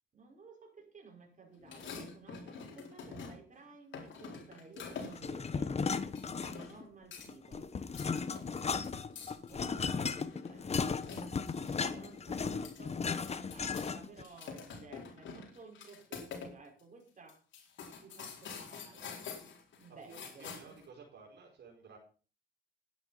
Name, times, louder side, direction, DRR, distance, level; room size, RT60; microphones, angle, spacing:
voice 1, 0.1-5.7 6.3-7.7 8.4-11.5 11.9-17.4 18.0-19.1 19.8-20.8, right 4 dB, 40° right, 1 dB, 5.5 m, -55 dB
sound 1, 1.6-3.6 3.9-5.3 6.2-6.8 7.1-7.5 7.8-11.7 12.0-12.1 12.5-13.9 14.2-16.5 16.8-16.9 17.3-20.8, left 5 dB, 70° left, 4.3 m, -47 dB
sound 2, 5.2-6.9 7.2-14.2, left 5 dB, 30° left, 1.1 m, -36 dB
voice 2, 11.7-12.8 20.1-22.0, right 4 dB, 60° right, 0 dB, 4.8 m, -55 dB
12.0 x 10.0 x 5.7 m, 0.38 s
cardioid pair, 90°, 20 cm